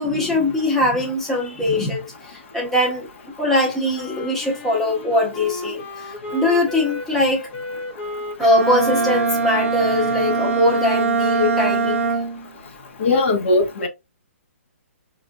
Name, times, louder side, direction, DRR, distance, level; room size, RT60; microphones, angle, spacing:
voice 1, 0.0-3.1 3.4-7.4 8.4-12.1, left 1 dB, 5° left, 0.8 m, -21 dB
Wind instrument woodwind instrument, 3.9-11.0, left 3 dB, 35° left, 0.9 m, -34 dB
Bowed string instrument, 8.4-12.5, right 4 dB, 65° right, 0.9 m, -22 dB
voice 2, 13.0-13.9, left 2 dB, 55° left, 1.0 m, -19 dB
5.4 x 2.5 x 2.3 m
hypercardioid pair, 160°, 8 cm